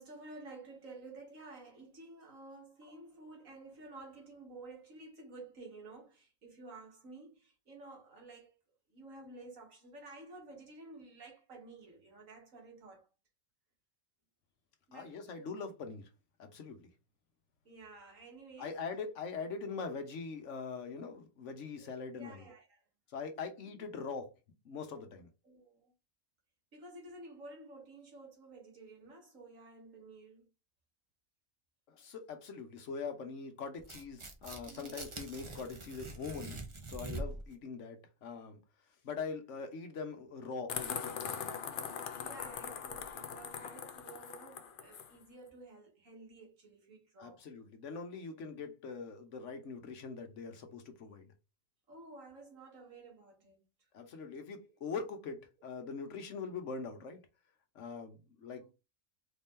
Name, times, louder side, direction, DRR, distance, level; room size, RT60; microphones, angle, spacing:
voice 1, 0.0-8.6 8.9-13.1 14.9-15.2 17.7-18.8 22.1-22.8 25.4-25.9 26.7-30.5 34.7-35.0 42.2-47.4 51.9-53.7 58.5-58.7, right 2 dB, 85° right, 2.0 m, -52 dB
voice 2, 14.9-16.1 16.4-16.9 18.6-22.4 23.1-24.3 24.6-25.3 31.9-36.6 36.9-38.6 39.0-41.5 47.2-51.3 53.9-57.2 57.7-58.7, left 5 dB, 70° left, 1.3 m, -42 dB
Tearing, 33.8-37.5, right 2 dB, 25° right, 0.8 m, -44 dB
sound 1, 40.7-45.1, left 7 dB, 55° left, 0.6 m, -41 dB
4.1 x 2.8 x 3.6 m
omnidirectional pair, 1.3 m